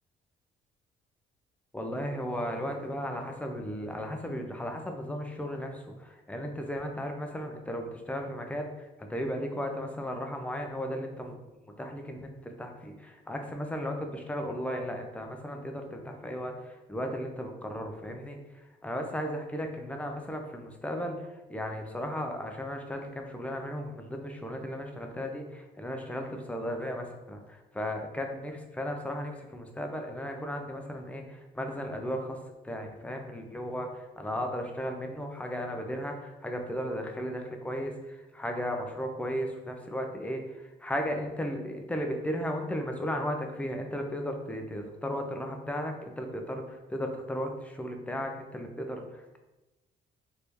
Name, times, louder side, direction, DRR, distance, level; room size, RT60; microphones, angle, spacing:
voice 1, 1.7-11.4 11.8-18.4 18.8-32.4 32.6-49.4, equal, 10° left, 3 dB, 0.4 m, -35 dB
3.0 x 2.7 x 3.3 m, 1.1 s
cardioid pair, 110°, 18 cm